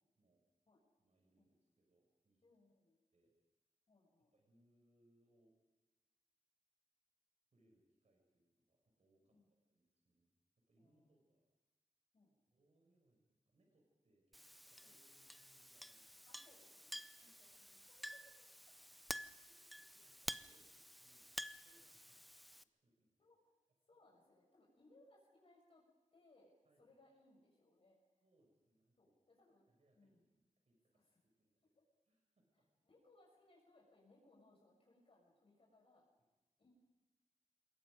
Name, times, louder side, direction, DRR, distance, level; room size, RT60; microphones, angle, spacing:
voice 1, 0.2-0.5 1.0-2.4 3.1-3.4 4.3-5.6 7.5-9.4 9.6-11.4 12.5-16.4 17.1-17.8 19.9-22.3 22.6-23.2 26.6-26.9 28.2-29.2 29.7-31.7 32.1-32.7, right 1 dB, 55° right, 1 dB, 6.0 m, -77 dB
voice 2, 2.4-3.0 3.9-4.3 9.3-9.4 10.8-11.1 12.1-12.3 14.8-14.9 16.2-17.2 17.6-18.5 19.5-19.6 23.2-23.3 23.9-25.8 26.1-28.0 29.0-29.7 30.0-30.3 30.9-31.2 31.7-31.9 32.8-36.1 36.6-36.7, left 2 dB, 45° left, -2 dB, 6.5 m, -70 dB
Chink clink, 14.3-22.6, equal, ahead, 0.6 m, -51 dB
27.0 x 22.0 x 5.2 m, 1.2 s
wide cardioid pair, 140°, 13 cm